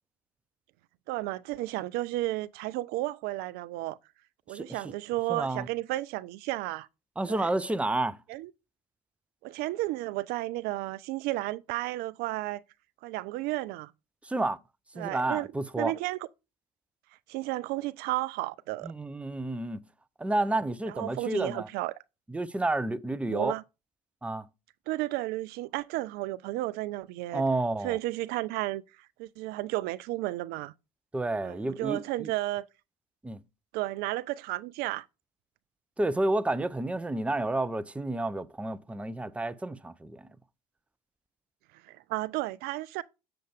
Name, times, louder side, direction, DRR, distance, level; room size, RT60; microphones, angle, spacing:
voice 1, 1.1-4.0 4.5-6.9 7.3-7.5 8.3-8.5 9.4-12.6 13.0-13.9 15.0-15.5 15.8-16.2 17.3-18.9 21.0-21.9 23.3-23.6 24.9-27.4 27.8-30.7 31.4-32.7 33.7-35.1 41.8-43.0, right 17 dB, 55° right, 0.4 m, -33 dB
voice 2, 4.5-4.9 5.3-5.7 7.2-8.2 14.2-14.6 15.0-15.9 18.8-19.8 20.2-21.7 22.3-23.6 24.2-24.5 27.3-28.0 31.1-32.3 33.2-33.4 36.0-40.3, right 2 dB, 5° right, 0.5 m, -30 dB
7.6 x 6.7 x 3.5 m
figure-of-eight pair, 60°, 20 cm